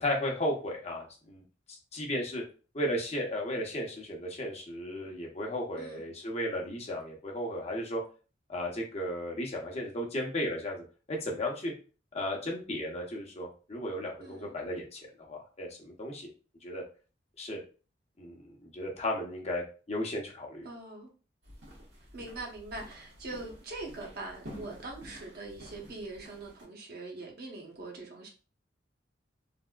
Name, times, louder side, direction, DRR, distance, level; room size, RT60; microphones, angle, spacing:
voice 1, 0.0-1.4 1.7-2.4 2.7-8.0 8.5-11.7 12.1-16.3 16.6-16.8 17.4-17.6 18.2-20.7, left 1 dB, 35° left, 0.8 m, -35 dB
voice 2, 14.2-14.6 20.6-21.1 22.1-28.3, right 2 dB, 60° right, 0.9 m, -42 dB
sound 1, 21.4-26.6, equal, 90° right, 1.5 m, -50 dB
3.4 x 2.6 x 2.3 m
head